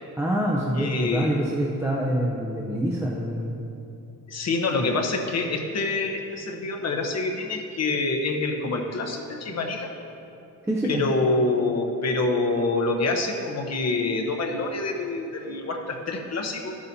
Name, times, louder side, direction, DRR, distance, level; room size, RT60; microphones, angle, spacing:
voice 1, 0.2-3.6 4.8-5.0 10.7-11.0, right 1 dB, 10° right, -4 dB, 0.6 m, -26 dB
voice 2, 0.8-1.3 4.3-9.9 10.8-16.8, left 3 dB, 50° left, 2 dB, 0.9 m, -26 dB
12.0 x 9.6 x 2.8 m, 2.8 s
wide cardioid pair, 170°, 34 cm